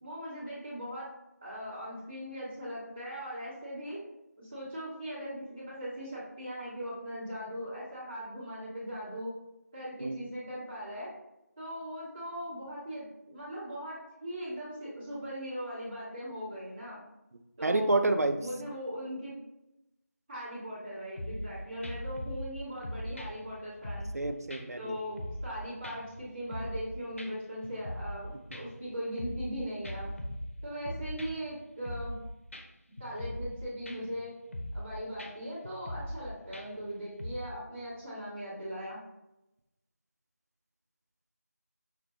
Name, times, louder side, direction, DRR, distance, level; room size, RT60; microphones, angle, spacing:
voice 1, 0.0-1.1 1.4-4.0 4.4-9.3 9.7-11.1 11.6-17.0 17.6-18.1 18.3-19.3 20.3-24.1 24.8-30.1 30.6-32.2 33.0-34.3 34.7-39.0, equal, 10° right, -13 dB, 1.0 m, -39 dB
voice 2, 17.6-18.4 24.1-24.9, right 2 dB, 65° right, 7 dB, 0.4 m, -28 dB
sound 1, 21.2-21.5 21.8-22.5 22.8-24.2 24.5-24.6 25.0-25.6 25.8-26.9 27.2-27.3 27.6-28.2 28.5-29.5 29.8-31.5 31.8-32.2 32.5-32.6 33.0-33.6 33.9-34.2 34.5-34.9 35.2-35.3 35.6-36.2 36.5-36.9 37.2-37.3, equal, 50° left, 0.6 m, -40 dB
5.8 x 2.5 x 3.0 m, 0.92 s
figure-of-eight pair, 175°, 9 cm